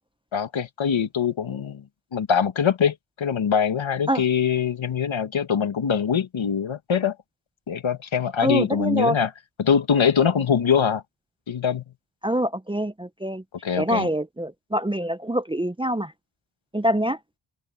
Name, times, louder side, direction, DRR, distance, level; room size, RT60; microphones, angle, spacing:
voice 1, 0.3-1.8 2.1-7.2 7.7-9.3 9.6-11.0 11.5-11.8 13.6-14.1, left 7 dB, 75° left, 2.1 m, -23 dB
voice 2, 8.4-9.2 12.2-13.4 13.8-16.1 16.7-17.2, equal, 10° right, 0.7 m, -25 dB
open air
wide cardioid pair, 80°, 48 cm